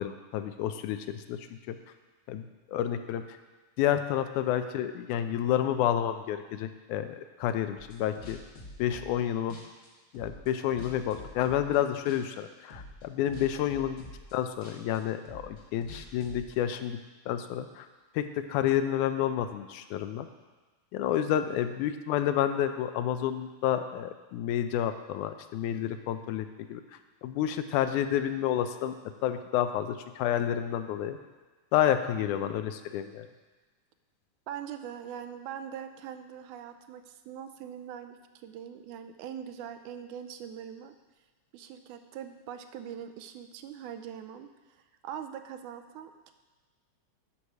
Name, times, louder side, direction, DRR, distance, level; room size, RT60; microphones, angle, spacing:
voice 1, 0.0-1.8 2.3-3.4 3.8-8.4 8.8-9.6 10.1-14.0 14.3-17.0 17.3-17.9 18.2-20.3 20.9-26.8 27.2-29.0 29.2-31.2 31.7-33.3, left 10 dB, 85° left, 9 dB, 2.0 m, -30 dB
sound 1, 7.8-9.2 9.5-11.8 12.1-12.4 12.7-16.6, left 1 dB, 60° left, 0.8 m, -47 dB
voice 2, 32.2-32.6 34.5-40.9 41.5-46.3, right 9 dB, 85° right, 8 dB, 2.0 m, -42 dB
9.9 x 4.8 x 6.5 m, 1.3 s
omnidirectional pair, 3.5 m